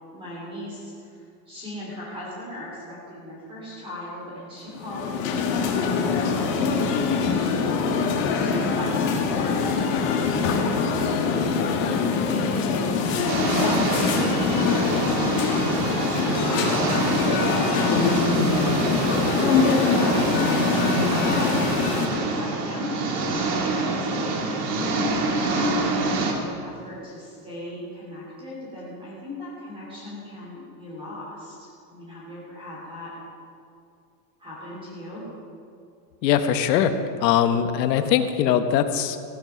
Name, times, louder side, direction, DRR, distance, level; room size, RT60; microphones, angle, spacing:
voice 1, 0.1-7.6 8.3-11.7 12.1-20.3 21.0-24.6 25.2-33.1 34.4-35.2, left 1 dB, 10° right, -6 dB, 3.0 m, -38 dB
sound 1, 4.7-22.1, left 5 dB, 40° left, 1.7 m, -23 dB
sound 2, 13.3-26.3, right 3 dB, 70° right, 2.4 m, -26 dB
voice 2, 36.2-37.0 37.2-39.2, left 9 dB, 80° left, 9 dB, 1.2 m, -21 dB
16.0 x 9.5 x 6.0 m, 2.4 s
supercardioid pair, 180°, 49 cm